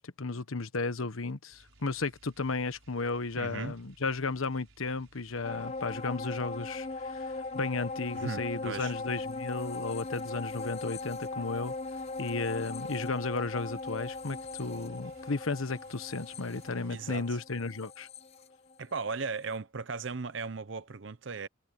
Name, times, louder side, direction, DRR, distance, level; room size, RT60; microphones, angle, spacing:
voice 1, 0.0-11.7 12.2-18.1, left 3 dB, 80° left, 1.2 m, -34 dB
sound 1, 1.5-17.1, right 2 dB, 80° right, 5.1 m, -61 dB
voice 2, 3.4-3.7 8.2-8.9 16.9-17.3 18.8-21.5, right 4 dB, 60° right, 0.8 m, -37 dB
sound 2, 5.4-19.1 19.5-19.6, left 3 dB, 30° left, 0.4 m, -39 dB
head